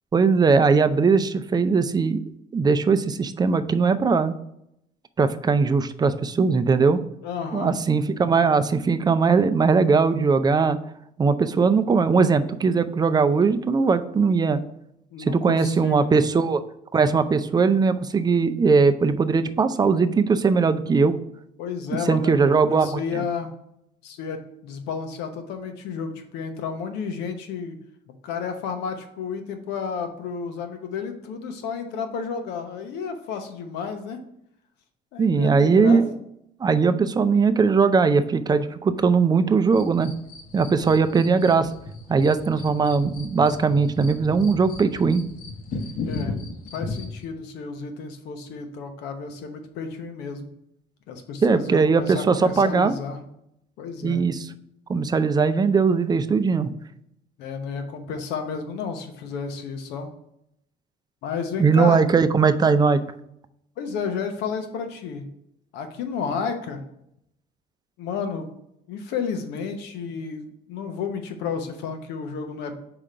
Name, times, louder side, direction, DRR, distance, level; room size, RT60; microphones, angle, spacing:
voice 1, 0.1-2.2 2.5-4.3 5.2-7.0 7.5-10.8 11.2-14.6 15.2-16.6 16.9-21.2 22.1-23.2 35.2-36.1 36.6-40.1 40.5-41.7 42.1-45.2 51.4-52.9 54.0-54.5 54.9-56.7 61.6-63.0, right 5 dB, 25° right, 11 dB, 0.4 m, -20 dB
voice 2, 7.2-7.8 15.1-16.3 19.3-19.5 21.6-22.4 22.7-23.5 24.0-27.8 28.2-34.2 35.1-36.0 46.0-46.4 46.7-50.5 51.1-53.2 53.8-54.2 57.4-60.1 61.2-62.0 63.8-65.2 65.7-66.8 68.0-68.5 68.9-72.8, left 5 dB, 90° left, 6 dB, 0.9 m, -32 dB
sound 1, 39.7-47.2, left 3 dB, 55° left, 1.0 m, -36 dB
4.9 x 3.7 x 5.5 m, 0.77 s
cardioid pair, 110°, 17 cm